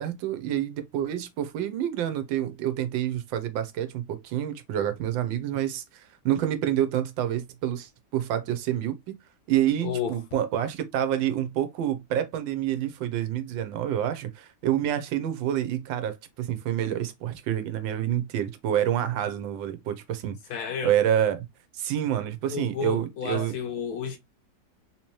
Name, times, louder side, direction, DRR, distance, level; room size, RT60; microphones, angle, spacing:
voice 1, 0.0-9.2 9.5-20.4 20.8-21.5 21.7-23.5, right 11 dB, 90° right, 1.4 m, -28 dB
voice 2, 9.8-10.2 20.5-21.0 22.5-24.2, left 7 dB, 65° left, 1.1 m, -31 dB
3.9 x 2.8 x 3.0 m
omnidirectional pair, 2.0 m